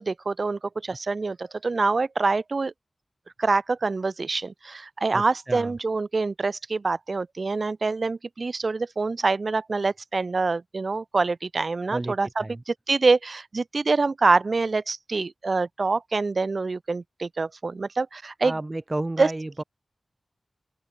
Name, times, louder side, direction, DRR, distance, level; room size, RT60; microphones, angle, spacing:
voice 1, 0.0-2.7 3.4-18.5 19.2-19.3, right 3 dB, 55° right, 1.1 m, -25 dB
voice 2, 5.1-5.7 11.9-12.6 18.4-19.6, right 2 dB, 25° right, 3.2 m, -32 dB
open air
wide cardioid pair, 85°, 0 cm